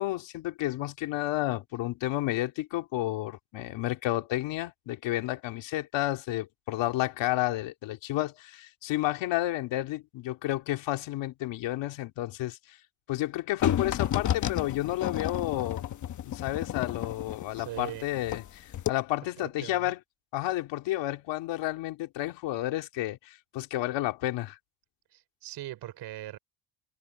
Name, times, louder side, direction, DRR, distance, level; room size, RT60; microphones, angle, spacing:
voice 1, 0.0-12.8 13.1-15.8 16.2-20.0 20.3-24.6, left 16 dB, 75° left, 2.7 m, -31 dB
sound 1, 13.6-18.5 18.7-18.9, left 11 dB, 40° left, 1.1 m, -31 dB
voice 2, 17.5-18.1 19.4-19.9 25.1-26.4, right 14 dB, 60° right, 4.3 m, -40 dB
cardioid pair, 155°, 44 cm